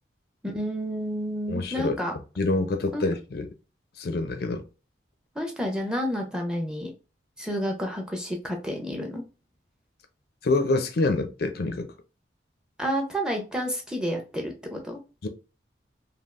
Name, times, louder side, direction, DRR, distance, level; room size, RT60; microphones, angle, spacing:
voice 1, 0.4-2.1 2.9-3.1 5.4-6.9 7.4-9.2 12.8-15.0, equal, 5° right, 0.6 m, -30 dB
voice 2, 1.5-2.0 2.4-3.5 4.0-4.6 10.4-11.9 15.2-15.3, left 2 dB, 55° left, 0.4 m, -26 dB
3.3 x 2.3 x 2.4 m
head